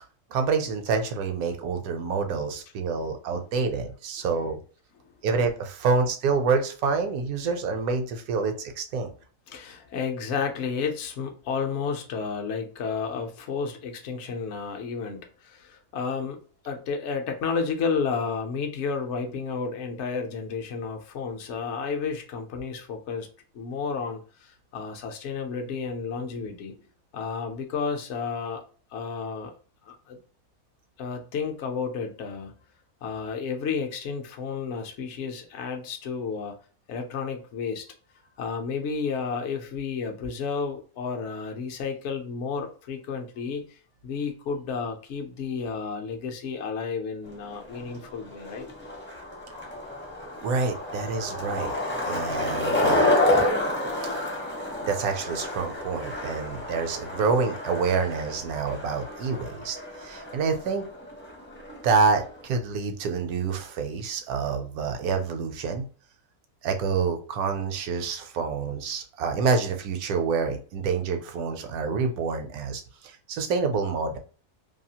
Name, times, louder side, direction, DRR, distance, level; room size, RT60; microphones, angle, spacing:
voice 1, 0.3-4.6 5.2-9.1 50.4-51.7 52.0-53.0 54.9-60.9 61.8-65.9 66.6-74.2, right 5 dB, 75° right, 6 dB, 1.0 m, -27 dB
voice 2, 9.5-16.4 16.6-23.3 23.5-26.8 27.1-28.6 28.9-29.5 29.8-30.2 31.0-32.5 33.0-36.6 36.9-37.9 38.4-43.8 44.0-48.7, left 5 dB, 65° left, 3 dB, 0.7 m, -32 dB
Skateboard, 47.3-62.4, left 1 dB, 15° left, 0.4 m, -29 dB
2.7 x 2.4 x 2.7 m, 0.39 s
omnidirectional pair, 1.6 m